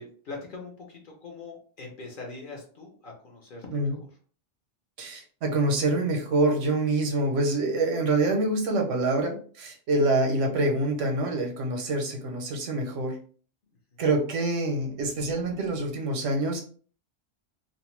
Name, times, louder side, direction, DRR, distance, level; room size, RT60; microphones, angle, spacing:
voice 1, 0.0-4.0 13.9-14.0, left 3 dB, 50° left, 0 dB, 0.8 m, -42 dB
voice 2, 5.0-13.2 14.0-16.6, right 2 dB, 90° right, 2 dB, 1.1 m, -26 dB
2.6 x 2.1 x 3.0 m, 0.43 s
omnidirectional pair, 1.2 m